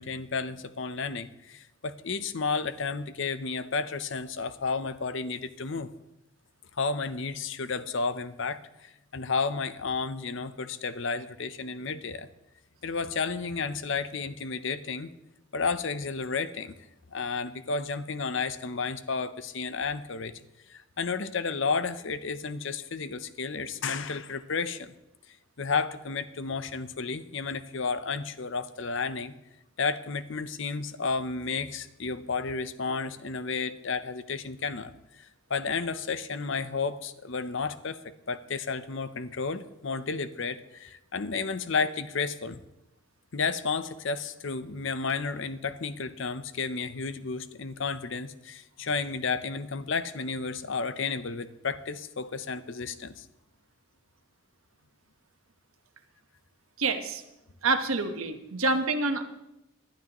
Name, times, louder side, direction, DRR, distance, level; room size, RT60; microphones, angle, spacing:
voice 1, 0.0-5.9 6.7-12.3 12.8-15.1 15.5-16.7 17.1-20.3 20.7-24.9 25.3-29.3 29.8-42.6 43.3-53.3, left 4 dB, 55° left, 13 dB, 0.7 m, -32 dB
voice 2, 56.8-57.2 57.6-59.2, right 3 dB, 70° right, 7 dB, 1.2 m, -27 dB
19.0 x 11.5 x 3.0 m, 0.92 s
head